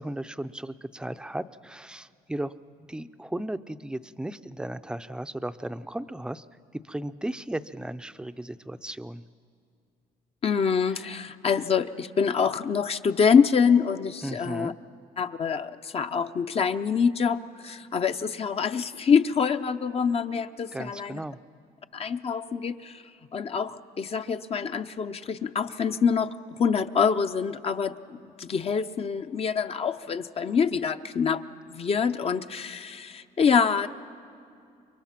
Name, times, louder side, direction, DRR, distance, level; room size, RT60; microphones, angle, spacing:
voice 1, 0.0-2.5 2.9-6.4 6.8-9.2 10.9-11.1 14.2-14.7 20.7-21.4, right 1 dB, 5° right, 12 dB, 0.5 m, -35 dB
voice 2, 10.4-14.7 15.2-21.2 21.9-23.0 23.3-31.4 31.7-33.9, left 6 dB, 35° left, 9 dB, 0.6 m, -25 dB
29.0 x 23.0 x 5.9 m, 2.5 s
cardioid pair, 110°, 17 cm